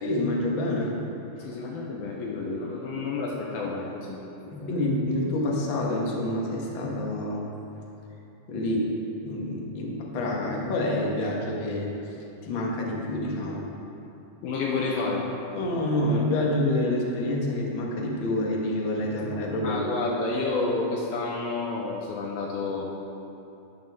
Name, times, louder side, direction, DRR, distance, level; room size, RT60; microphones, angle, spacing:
voice 1, 0.0-1.0 1.4-1.5 4.5-7.4 8.5-8.9 9.2-11.9 12.4-13.7 15.5-19.8, left 1 dB, 50° left, -3 dB, 1.5 m, -27 dB
voice 2, 1.4-4.2 4.6-4.9 14.4-15.3 19.6-22.9, left 3 dB, 80° left, -4 dB, 2.8 m, -30 dB
13.0 x 10.5 x 3.7 m, 2.9 s
omnidirectional pair, 4.4 m